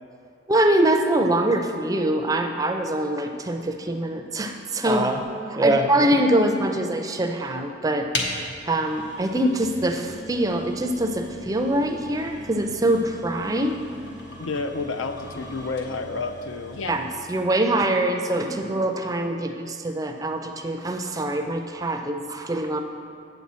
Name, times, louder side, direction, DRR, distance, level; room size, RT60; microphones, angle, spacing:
voice 1, 0.5-8.1 8.7-13.7 16.9-22.8, right 1 dB, 20° right, 4 dB, 0.4 m, -24 dB
sound 1, 8.1-17.3, left 2 dB, 65° left, 1.1 m, -38 dB
voice 2, 14.4-16.9, left 3 dB, 80° left, 8 dB, 0.5 m, -30 dB
8.1 x 7.3 x 4.2 m, 2.4 s
head